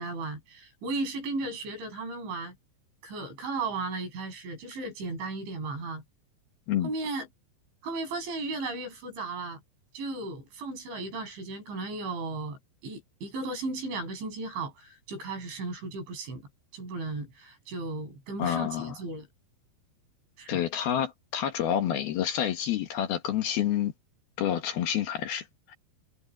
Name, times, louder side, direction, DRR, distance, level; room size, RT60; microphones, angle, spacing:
voice 1, 0.0-2.6 3.0-6.0 6.8-7.3 7.8-9.6 9.9-16.4 16.7-19.3 20.4-20.6, right 3 dB, 90° right, 10.5 m, -35 dB
voice 2, 18.4-19.0 20.5-23.9 24.4-25.8, left 10 dB, 65° left, 3.3 m, -28 dB
omnidirectional pair, 5.2 m